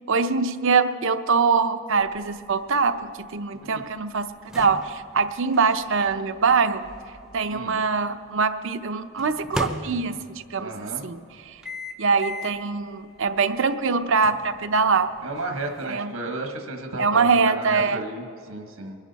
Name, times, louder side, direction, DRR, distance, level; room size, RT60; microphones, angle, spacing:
voice 1, 0.1-4.3 4.5-6.8 7.3-10.1 10.5-10.7 11.0-11.2 11.5-11.6 12.0-15.1 15.9-16.1 17.0-18.0, right 5 dB, 60° right, 10 dB, 0.6 m, -23 dB
sound 1, 2.0-8.1 9.2-10.5 11.6-12.7 13.2-13.3 14.2-15.9, left 1 dB, 5° right, 0.6 m, -38 dB
voice 2, 10.6-11.1 15.2-19.0, right 2 dB, 75° right, 3 dB, 1.3 m, -33 dB
24.5 x 11.0 x 4.1 m, 2.3 s
head